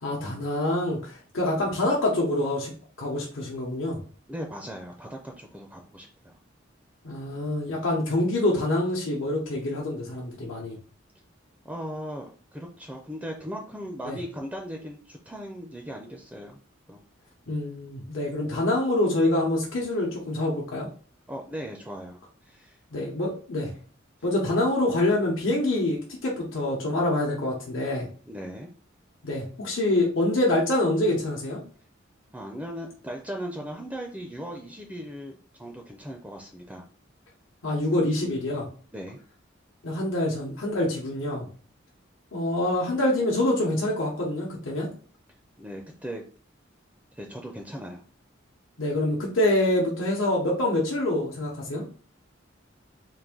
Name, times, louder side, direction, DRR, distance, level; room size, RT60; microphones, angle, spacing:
voice 1, 0.0-4.0 7.0-10.8 14.0-14.2 17.5-20.9 22.9-23.7 24.2-28.1 29.2-31.6 37.6-38.7 39.8-41.5 42.3-44.9 48.8-51.8, left 1 dB, 85° left, -3 dB, 0.9 m, -26 dB
voice 2, 4.3-6.4 11.6-16.6 16.9-17.0 21.3-22.8 24.4-24.5 28.3-28.7 32.3-35.3 35.6-36.8 38.9-39.2 45.6-46.2 47.1-48.0, equal, 5° right, 1 dB, 0.4 m, -38 dB
3.9 x 2.5 x 3.6 m, 0.41 s
head